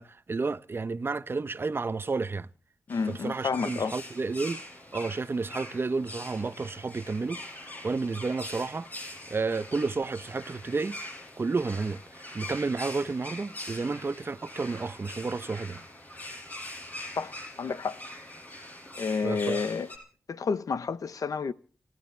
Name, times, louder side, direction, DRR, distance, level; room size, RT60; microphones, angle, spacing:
voice 1, 0.0-2.5 3.1-4.6 4.9-7.4 7.8-11.0 11.4-15.8 19.2-19.6, right 4 dB, 35° right, 0.9 m, -31 dB
voice 2, 2.9-3.9 17.2-18.0 19.0-19.9 20.3-21.5, left 5 dB, 65° left, 0.9 m, -30 dB
sound 1, 2.9-20.0, left 1 dB, 25° left, 6.1 m, -43 dB
29.0 x 14.5 x 3.4 m
wide cardioid pair, 145°, 6 cm